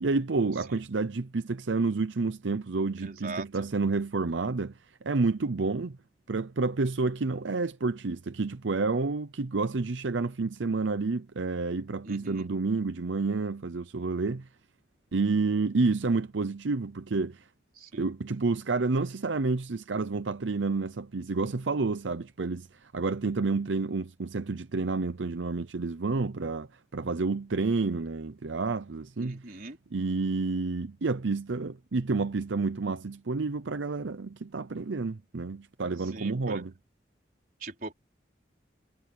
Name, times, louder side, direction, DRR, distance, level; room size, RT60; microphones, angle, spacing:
voice 1, 0.0-6.0 6.3-14.5 15.1-17.5 17.9-29.6 29.9-36.7, right 3 dB, 85° right, 0.7 m, -29 dB
voice 2, 3.0-3.7 12.0-12.5 17.8-18.1 29.2-29.8 36.1-36.6 37.6-37.9, right 3 dB, 50° right, 4.5 m, -41 dB
head